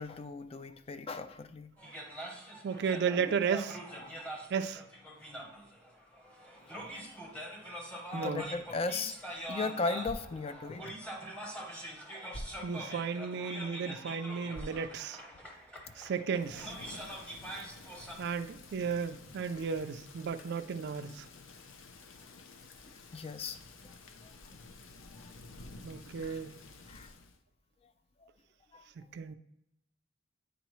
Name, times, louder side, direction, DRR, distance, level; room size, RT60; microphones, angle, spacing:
voice 1, 0.0-1.7 2.2-2.3 3.2-3.3 4.0-4.2 6.6-6.9 8.1-11.0 23.1-23.6 23.8-23.9 24.2-24.7 25.2-25.3 26.0-26.4 26.9-27.1 28.2-28.3 28.7-28.8, left 3 dB, 30° left, 11 dB, 0.4 m, -38 dB
sound 1, 1.8-18.2, right 1 dB, 5° left, 0.9 m, -44 dB
voice 2, 2.6-3.8 4.5-4.8 8.1-8.4 12.6-15.2 16.0-16.7 18.2-21.3 25.8-26.6 29.0-29.3, right 6 dB, 60° right, 8 dB, 0.4 m, -34 dB
sound 2, 8.8-15.7, right 1 dB, 45° left, 0.9 m, -51 dB
Thunder / Rain, 16.3-27.4, left 3 dB, 75° left, 0.6 m, -52 dB
9.2 x 3.8 x 3.1 m, 0.81 s
head